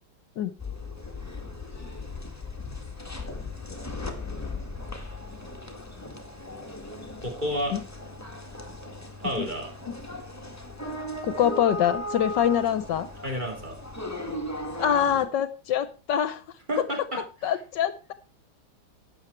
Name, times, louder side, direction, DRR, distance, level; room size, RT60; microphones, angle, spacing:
sound 1, 0.6-15.3, left 1 dB, 10° left, 1.6 m, -37 dB
voice 1, 7.2-7.7 9.2-9.7 13.2-13.8 16.7-17.5, equal, 25° right, 1 dB, 3.7 m, -31 dB
voice 2, 11.2-13.1 14.8-16.4 17.4-18.1, left 9 dB, 70° left, 13 dB, 1.4 m, -25 dB
12.0 x 9.1 x 4.4 m, 0.33 s
omnidirectional pair, 2.0 m